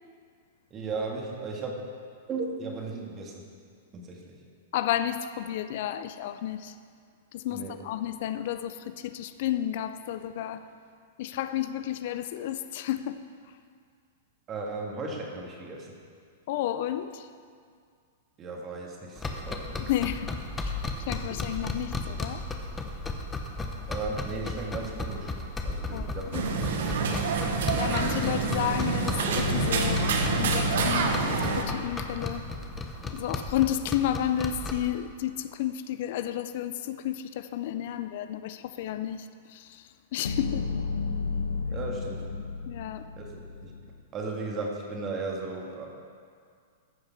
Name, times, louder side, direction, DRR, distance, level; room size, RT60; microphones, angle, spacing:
voice 1, 0.7-1.9 2.3-3.4 3.9-4.3 7.5-7.8 14.5-16.0 18.4-19.7 23.9-25.3 25.7-26.8 41.7-42.2 43.2-43.7 44.1-45.9, right 3 dB, 30° right, 1.8 m, -36 dB
voice 2, 4.7-6.8 7.3-10.6 11.2-13.6 16.5-17.3 19.8-20.3 20.6-22.5 25.9-26.6 27.7-32.5 33.1-40.7 42.7-43.1, left 11 dB, 60° left, 0.4 m, -32 dB
sound 1, 19.2-34.9, left 2 dB, 15° left, 0.8 m, -35 dB
sound 2, 26.3-31.6, right 5 dB, 75° right, 1.1 m, -27 dB
sound 3, 29.4-33.7 40.2-44.0, left 4 dB, 90° left, 0.9 m, -33 dB
14.5 x 4.9 x 5.8 m
hypercardioid pair, 130°, 0 cm